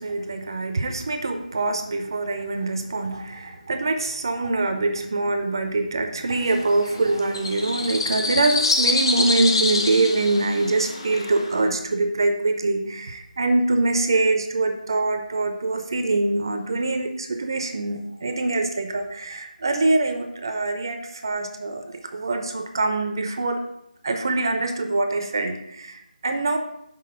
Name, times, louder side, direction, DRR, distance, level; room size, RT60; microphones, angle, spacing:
voice 1, 0.0-21.8 22.1-23.6 24.0-26.6, right 2 dB, 30° right, 6 dB, 0.5 m, -24 dB
sound 1, 6.4-11.6, left 3 dB, 30° left, 0.7 m, -26 dB
5.9 x 3.8 x 6.0 m, 0.80 s
figure-of-eight pair, 170°, 5 cm